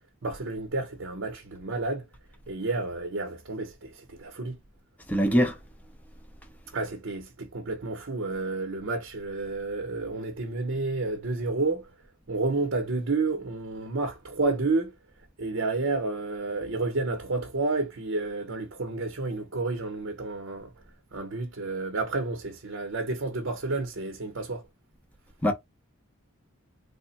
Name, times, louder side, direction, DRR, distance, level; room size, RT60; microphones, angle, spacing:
voice 1, 0.2-2.0 2.5-4.6 6.7-11.9 12.3-14.9 15.4-20.7 21.1-24.6, right 3 dB, 60° right, 0.8 m, -30 dB
voice 2, 5.1-5.6 25.4-25.5, equal, 5° left, 0.7 m, -22 dB
3.5 x 2.1 x 4.0 m
head